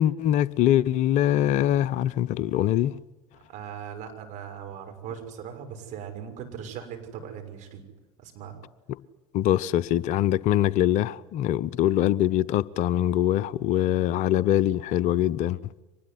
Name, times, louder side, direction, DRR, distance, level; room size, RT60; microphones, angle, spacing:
voice 1, 0.0-2.9 9.3-15.6, left 12 dB, 50° left, 0.7 m, -23 dB
voice 2, 3.5-7.8 8.2-8.6, right 8 dB, 50° right, 6.5 m, -39 dB
24.5 x 20.5 x 9.9 m
hypercardioid pair, 75°, 16 cm